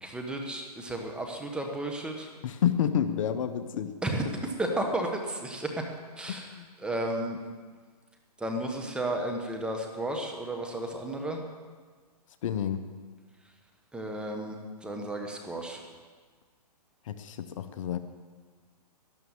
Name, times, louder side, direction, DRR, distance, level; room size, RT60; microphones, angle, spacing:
voice 1, 0.0-2.3 4.0-5.9 6.2-7.4 8.4-11.4 13.9-15.8, right 1 dB, 5° right, 2 dB, 1.1 m, -33 dB
voice 2, 2.4-3.9 6.3-6.7 12.4-12.8 17.1-18.0, left 9 dB, 50° left, 10 dB, 0.9 m, -29 dB
12.5 x 11.0 x 7.3 m, 1.5 s
hypercardioid pair, 145°, 21 cm